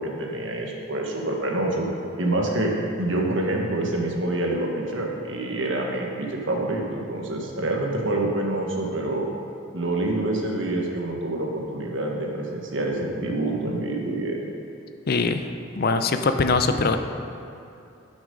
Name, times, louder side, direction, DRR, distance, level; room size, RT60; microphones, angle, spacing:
voice 1, 0.0-1.9 2.2-2.7 3.0-9.3 9.7-14.4, right 2 dB, 80° right, 0 dB, 1.4 m, -26 dB
voice 2, 15.1-15.5 15.7-17.0, left 4 dB, 55° left, 8 dB, 0.5 m, -22 dB
11.0 x 6.2 x 5.2 m, 2.7 s
head